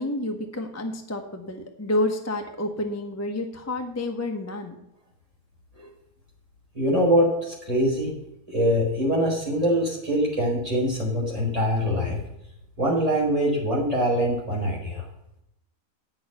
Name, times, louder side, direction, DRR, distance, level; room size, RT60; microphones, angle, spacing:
voice 1, 0.0-4.7, left 1 dB, 10° left, 4 dB, 0.8 m, -29 dB
voice 2, 6.7-8.1 8.5-12.2 12.8-15.0, equal, 20° right, -5 dB, 4.7 m, -23 dB
8.6 x 6.6 x 8.2 m, 0.83 s
omnidirectional pair, 1.7 m